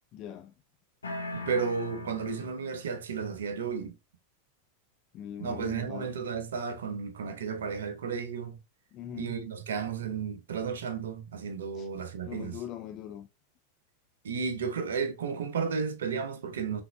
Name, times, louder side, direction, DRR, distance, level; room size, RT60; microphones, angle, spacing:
voice 1, 0.1-0.5 5.1-6.1 8.9-9.4 11.7-11.9 12.2-13.3, left 10 dB, 35° left, 0.4 m, -41 dB
sound 1, 1.0-3.0, left 2 dB, 75° left, 0.9 m, -39 dB
voice 2, 1.3-4.0 5.4-8.6 9.1-12.6 14.2-16.8, right 6 dB, 65° right, 0.8 m, -33 dB
5.8 x 3.4 x 2.3 m
figure-of-eight pair, 90°, 0 cm